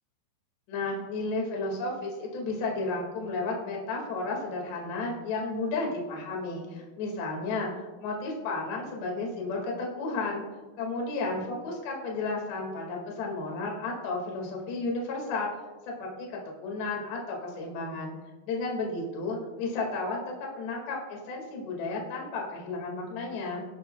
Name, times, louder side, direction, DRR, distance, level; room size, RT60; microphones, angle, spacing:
voice 1, 0.7-10.4 10.8-15.5 15.9-18.1 18.5-23.7, left 3 dB, 65° left, -1 dB, 4.1 m, -33 dB
25.5 x 10.5 x 2.3 m, 1.3 s
omnidirectional pair, 5.4 m